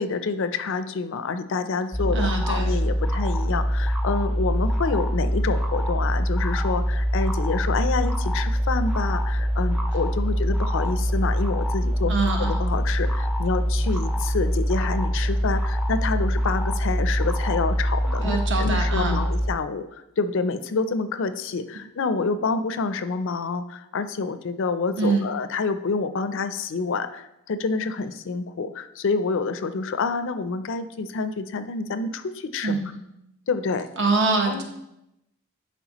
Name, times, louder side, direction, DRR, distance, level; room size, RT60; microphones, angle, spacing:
voice 1, 0.0-12.1 12.4-19.8 20.2-32.8 33.5-33.9 34.5-34.6, left 4 dB, 60° left, 11 dB, 0.4 m, -28 dB
sound 1, 1.9-19.5, equal, ahead, 0.5 m, -24 dB
voice 2, 2.1-2.8 12.1-12.5 18.2-19.2 25.0-25.2 32.6-32.9 34.0-34.6, right 3 dB, 55° right, 2 dB, 1.1 m, -24 dB
11.0 x 4.5 x 3.0 m, 0.85 s
head